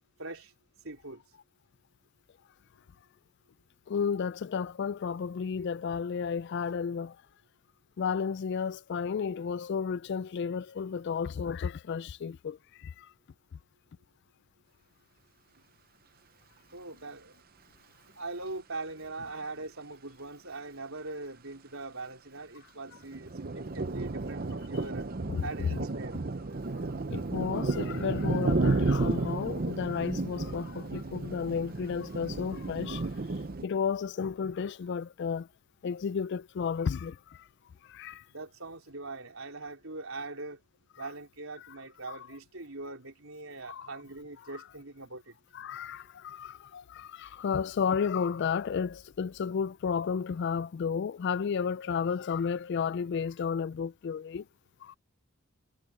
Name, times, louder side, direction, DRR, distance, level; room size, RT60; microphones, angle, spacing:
voice 1, 0.2-0.5 0.8-1.2 16.7-17.4 18.2-25.1 25.4-26.2 38.3-40.6 41.0-45.4, right 3 dB, 65° right, 4.2 m, -41 dB
voice 2, 3.9-7.2 8.0-13.1 25.3-25.7 27.1-33.1 33.6-35.5 35.8-37.5 37.9-38.2 42.1-42.2 43.7-43.9 45.5-54.4 54.8-55.0, left 6 dB, 50° left, 0.3 m, -32 dB
sound 1, 22.9-33.6, right 3 dB, 40° right, 0.7 m, -32 dB
head